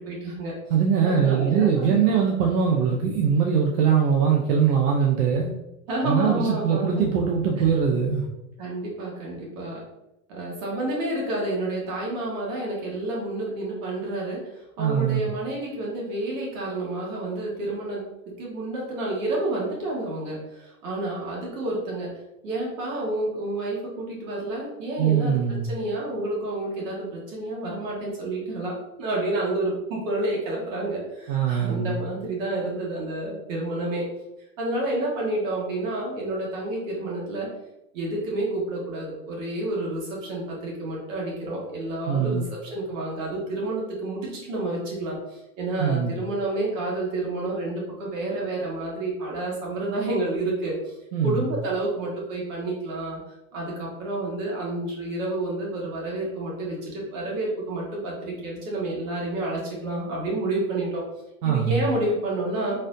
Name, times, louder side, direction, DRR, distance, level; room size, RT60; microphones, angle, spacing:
voice 1, 0.0-0.5 1.0-2.2 5.9-7.0 7.6-7.7 8.6-9.8 10.3-34.1 34.6-37.5 37.9-50.9 51.2-53.2 53.5-61.0 61.4-62.8, right 2 dB, 60° right, -4 dB, 1.3 m, -29 dB
voice 2, 0.7-5.5 6.0-8.2 14.8-15.2 25.0-25.7 31.3-32.0 42.1-42.4 45.8-46.1 51.1-51.5 61.4-61.8, right 7 dB, 85° right, 0 dB, 0.7 m, -22 dB
4.0 x 2.5 x 2.6 m, 0.92 s
supercardioid pair, 170°, 44 cm